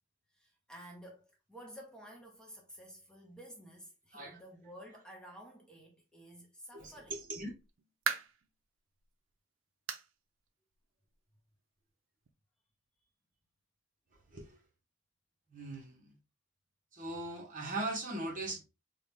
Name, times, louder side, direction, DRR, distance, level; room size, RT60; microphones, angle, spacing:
voice 1, 0.3-7.2, equal, 5° left, 0.8 m, -52 dB
voice 2, 6.7-7.5 14.3-14.6 15.5-16.1 16.9-18.6, right 2 dB, 45° right, 1.0 m, -40 dB
sound 1, 7.4-8.5 9.0-9.1 9.9-10.1 10.5-10.6 11.1-11.2 12.3-12.4, right 7 dB, 80° right, 0.5 m, -37 dB
3.8 x 2.2 x 3.4 m
head